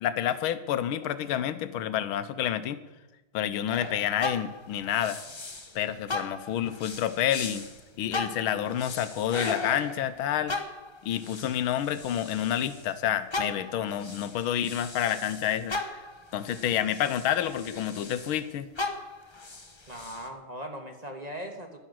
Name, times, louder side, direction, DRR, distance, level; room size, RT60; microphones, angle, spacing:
voice 1, 0.0-2.8 3.3-5.2 5.7-7.7 8.0-10.6 11.0-15.8 16.3-18.7, left 10 dB, 90° left, 12 dB, 1.6 m, -29 dB
sound 1, 3.7-5.8 6.1-12.9 13.3-18.4 18.7-20.3, left 3 dB, 25° left, 0.6 m, -38 dB
voice 2, 19.9-21.8, equal, 20° right, 4 dB, 1.3 m, -39 dB
11.5 x 10.5 x 7.7 m, 1.1 s
omnidirectional pair, 2.2 m